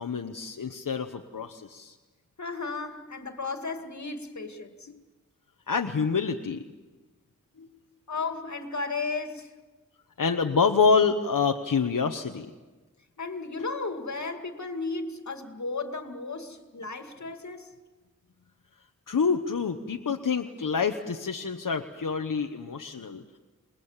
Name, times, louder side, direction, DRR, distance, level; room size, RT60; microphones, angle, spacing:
voice 1, 0.0-2.0 5.7-6.6 7.6-7.7 10.2-12.5 19.1-23.4, left 5 dB, 85° left, 5 dB, 1.1 m, -27 dB
voice 2, 2.4-4.9 8.1-9.5 13.2-17.7, left 3 dB, 60° left, 6 dB, 2.3 m, -34 dB
28.0 x 21.5 x 7.4 m, 1.3 s
wide cardioid pair, 85°, 32 cm